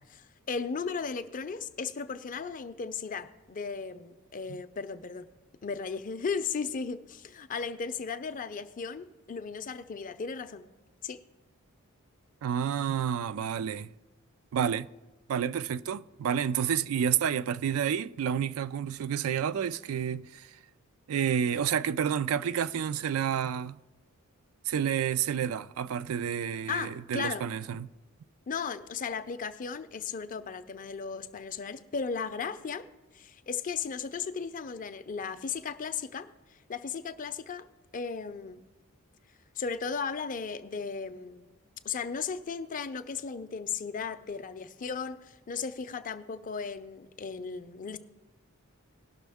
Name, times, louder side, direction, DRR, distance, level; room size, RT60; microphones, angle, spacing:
voice 1, 0.2-5.3 5.6-10.6 11.0-11.2 26.7-27.4 28.5-32.9 33.1-36.3 36.7-37.7 37.9-38.6 39.6-41.6 41.8-48.0, left 5 dB, 40° left, 0.5 m, -36 dB
voice 2, 12.4-13.9 14.5-14.9 15.3-20.5 21.1-23.8 24.7-27.9, right 8 dB, 70° right, 0.3 m, -29 dB
18.5 x 6.1 x 3.5 m
head